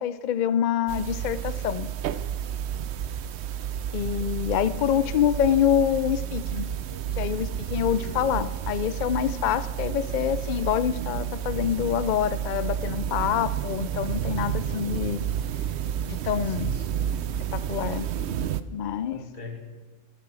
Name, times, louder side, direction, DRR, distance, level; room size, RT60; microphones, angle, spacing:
voice 1, 0.0-1.9 3.9-6.7 7.2-15.2 16.1-16.7 17.5-18.1 18.7-19.2, left 9 dB, 70° left, 14 dB, 0.4 m, -26 dB
sound 1, 0.9-18.6, right 9 dB, 65° right, 0.8 m, -31 dB
voice 2, 8.1-8.4 16.4-17.0 19.1-19.6, left 4 dB, 45° left, 1 dB, 2.4 m, -42 dB
13.5 x 12.0 x 6.1 m, 1.3 s
omnidirectional pair, 1.3 m